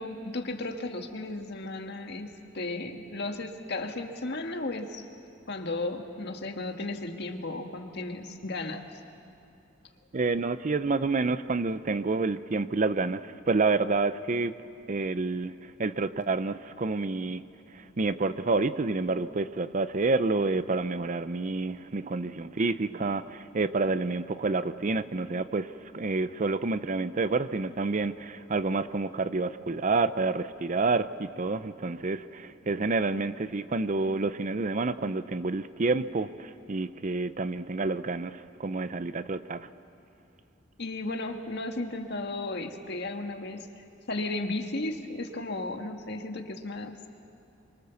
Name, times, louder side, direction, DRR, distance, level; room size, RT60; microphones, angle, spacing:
voice 1, 0.0-5.1 5.5-8.9 40.8-47.0, left 2 dB, 60° left, 5 dB, 1.7 m, -35 dB
voice 2, 10.1-14.5 14.9-17.4 17.7-39.7, right 3 dB, 40° right, 13 dB, 0.6 m, -29 dB
28.0 x 24.0 x 7.0 m, 2.6 s
head